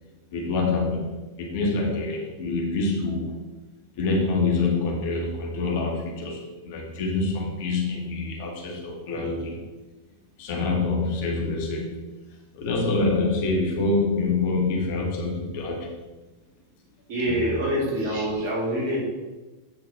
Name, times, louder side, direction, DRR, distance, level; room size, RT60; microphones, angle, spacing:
voice 1, 0.3-3.4 4.0-9.6 10.4-12.0 12.5-16.0 17.3-17.6, left 3 dB, 50° left, 0 dB, 1.8 m, -26 dB
voice 2, 17.1-19.0, equal, 50° right, -3 dB, 2.8 m, -26 dB
8.0 x 5.7 x 4.4 m, 1.2 s
figure-of-eight pair, 90°, 0 cm